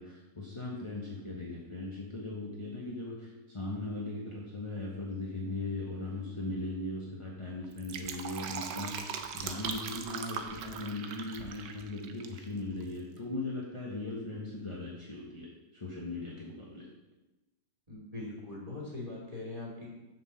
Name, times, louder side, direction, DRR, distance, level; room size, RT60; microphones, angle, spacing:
voice 1, 0.0-16.9, left 2 dB, 20° left, -4 dB, 1.1 m, -39 dB
Fill (with liquid), 7.6-12.4 12.7-12.8, right 7 dB, 85° right, 1.4 m, -40 dB
voice 2, 17.9-19.9, left 2 dB, 20° right, -5 dB, 2.6 m, -41 dB
6.0 x 6.0 x 7.0 m, 1.0 s
omnidirectional pair, 1.8 m